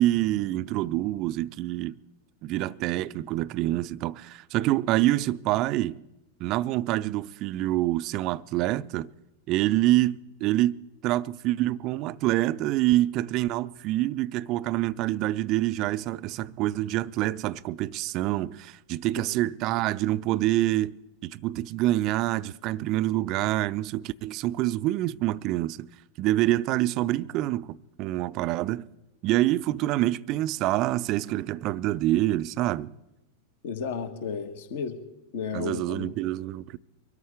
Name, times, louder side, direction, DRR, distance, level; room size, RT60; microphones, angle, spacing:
voice 1, 0.0-2.0 2.4-6.0 6.4-9.1 9.5-10.8 11.0-20.9 21.2-25.8 26.2-28.9 29.2-32.9 35.5-36.8, right 15 dB, 40° right, 0.4 m, -26 dB
voice 2, 33.6-35.0 35.3-36.1, left 6 dB, 55° left, 1.4 m, -33 dB
24.0 x 13.0 x 3.5 m
figure-of-eight pair, 90°, 0 cm